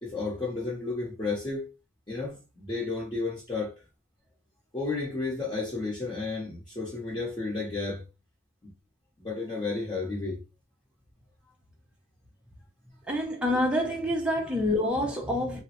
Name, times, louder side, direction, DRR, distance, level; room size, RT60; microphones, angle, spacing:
voice 1, 0.0-1.7 2.1-3.7 4.7-8.0 8.6-8.7 9.2-10.4, left 3 dB, 25° left, 0.9 m, -32 dB
voice 2, 13.1-15.6, left 1 dB, 5° right, 0.6 m, -27 dB
3.2 x 2.0 x 2.9 m
head